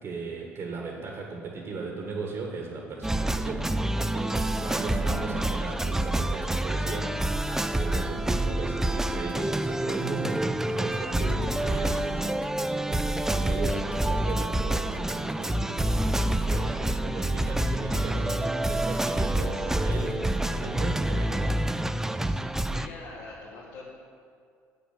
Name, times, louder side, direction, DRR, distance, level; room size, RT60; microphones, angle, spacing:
voice 1, 0.0-21.7, right 4 dB, 50° right, 0 dB, 1.5 m, -37 dB
sound 1, 3.0-22.9, right 1 dB, 5° right, 0.4 m, -27 dB
Organ, 4.2-20.2, right 4 dB, 30° right, 0.7 m, -46 dB
voice 2, 22.7-23.8, left 3 dB, 75° left, -6 dB, 1.6 m, -43 dB
8.1 x 7.1 x 5.9 m, 2.3 s
hypercardioid pair, 65°, 7 cm